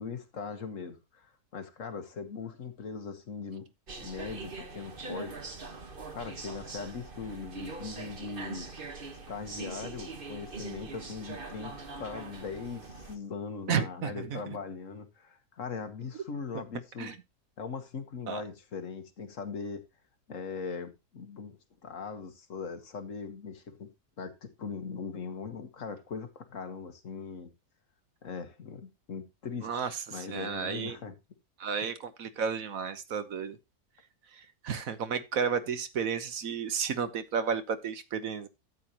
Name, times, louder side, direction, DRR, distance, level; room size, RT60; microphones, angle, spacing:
voice 1, 0.0-3.7 4.0-5.4 6.1-8.7 9.3-17.1 17.6-19.8 20.3-23.9 24.2-27.5 28.2-31.2, left 5 dB, 60° left, 1.7 m, -40 dB
sound 1, 3.9-13.2, right 3 dB, 40° right, 1.4 m, -42 dB
voice 2, 13.7-14.4 17.0-17.2 18.3-18.4 29.6-31.0 31.6-33.6 34.6-38.5, right 6 dB, 70° right, 1.4 m, -32 dB
12.5 x 8.3 x 2.9 m
omnidirectional pair, 1.5 m